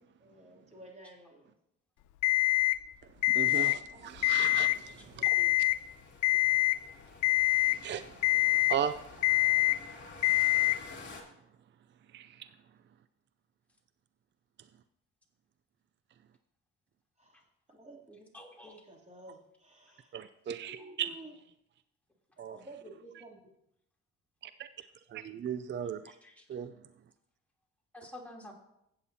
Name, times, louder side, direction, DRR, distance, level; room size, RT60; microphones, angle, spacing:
voice 1, 0.2-1.5 3.9-4.1 5.2-5.5 17.2-17.4 17.7-18.3 18.6-20.1 20.6-21.3 22.5-23.4, right 2 dB, 20° right, -2 dB, 3.0 m, -51 dB
Alarm, 2.2-2.8 3.2-3.8 4.2-4.8 5.2-5.8 6.2-6.8 7.2-7.8 8.2-8.8 9.2-9.8 10.2-10.8, left 20 dB, 80° left, 0.5 m, -25 dB
voice 2, 3.3-5.3 7.8-8.0 8.7-8.9 12.1-12.5 20.1-21.1 22.4-22.6 24.4-24.7 25.1-26.1 26.5-26.7, right 9 dB, 40° right, 12 dB, 0.4 m, -36 dB
sound 1, 4.1-11.2, left 3 dB, 35° left, 2.9 m, -51 dB
voice 3, 18.3-18.8 20.5-20.9 26.0-26.5 27.9-28.5, left 1 dB, 5° left, -3 dB, 3.1 m, -50 dB
15.5 x 8.9 x 2.8 m, 0.80 s
cardioid pair, 90°, 30 cm